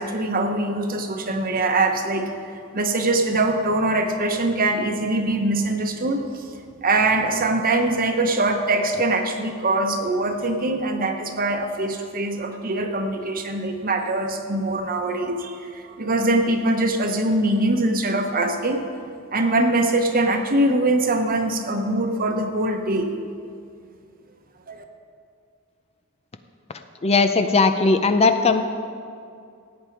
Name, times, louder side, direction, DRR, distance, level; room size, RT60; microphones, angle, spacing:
voice 1, 0.0-2.2 2.7-6.4 6.8-18.8 19.3-23.1 24.7-24.8, right 2 dB, 45° right, 5 dB, 1.1 m, -23 dB
voice 2, 27.0-28.6, left 4 dB, 30° left, 8 dB, 0.5 m, -18 dB
16.5 x 8.5 x 4.7 m, 2.4 s
head